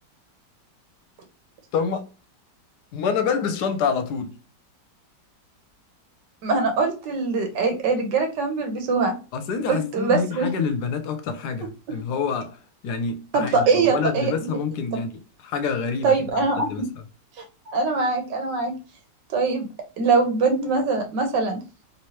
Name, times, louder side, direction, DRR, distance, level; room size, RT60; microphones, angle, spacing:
voice 1, 1.7-2.1 2.9-4.3 9.3-12.6 12.8-15.1 15.4-16.9, left 5 dB, 75° left, 1.1 m, -27 dB
voice 2, 6.4-9.1 9.7-10.5 13.3-14.3 14.9-15.0 16.0-16.7 17.7-18.7 19.3-19.7 20.0-21.6, right 4 dB, 85° right, 1.6 m, -22 dB
3.2 x 3.1 x 2.8 m
omnidirectional pair, 1.8 m